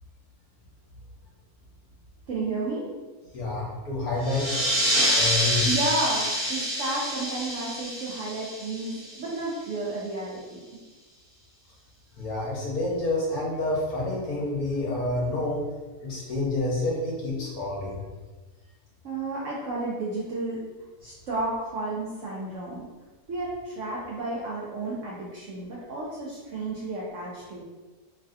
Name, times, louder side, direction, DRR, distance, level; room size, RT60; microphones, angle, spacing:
voice 1, 2.3-2.8 5.6-10.6 19.0-20.6 21.0-22.8 23.3-27.6, right 2 dB, 70° right, -5 dB, 0.7 m, -32 dB
voice 2, 3.3-4.6 5.1-5.8 12.2-15.6 16.0-18.0, left 2 dB, 65° left, -4 dB, 1.2 m, -28 dB
sound 1, 4.2-9.4, equal, 30° right, 0.7 m, -27 dB
3.1 x 2.6 x 2.4 m, 1.2 s
omnidirectional pair, 1.8 m